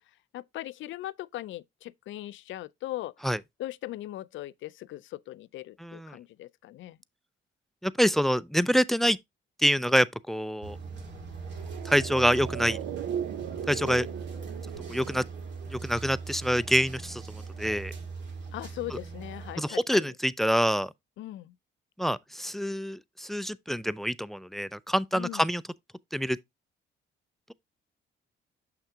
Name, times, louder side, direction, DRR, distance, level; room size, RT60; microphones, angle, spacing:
voice 1, 0.3-3.1 3.6-7.0 18.5-20.1 21.2-21.5 25.1-25.4, left 15 dB, 75° left, 0.4 m, -39 dB
voice 2, 5.8-6.2 7.8-9.2 9.6-10.8 11.9-12.8 13.7-14.1 14.9-15.2 15.7-17.2 17.6-17.9 18.9-19.0 19.6-20.9 22.0-25.6 26.1-26.4, equal, ahead, 0.3 m, -26 dB
sound 1, 10.6-19.6, right 4 dB, 65° right, 2.0 m, -40 dB
sound 2, 11.5-16.0 16.3-16.4, right 10 dB, 85° right, 0.5 m, -37 dB
6.7 x 5.8 x 2.8 m
cardioid pair, 90°, 20 cm